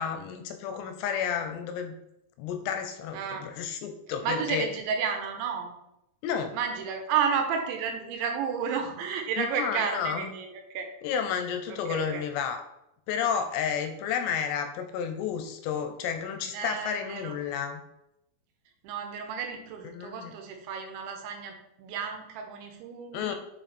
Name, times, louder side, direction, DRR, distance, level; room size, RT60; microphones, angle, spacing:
voice 1, 0.0-1.9 2.4-4.7 6.2-6.6 9.4-10.3 11.0-12.6 13.1-17.8 19.9-20.3 23.1-23.4, left 7 dB, 80° left, 7 dB, 2.8 m, -31 dB
voice 2, 3.1-3.5 4.2-5.7 6.5-10.9 11.7-12.2 16.5-17.3 18.8-23.4, right 6 dB, 85° right, 4 dB, 3.4 m, -32 dB
7.0 x 5.7 x 4.3 m, 0.83 s
omnidirectional pair, 5.2 m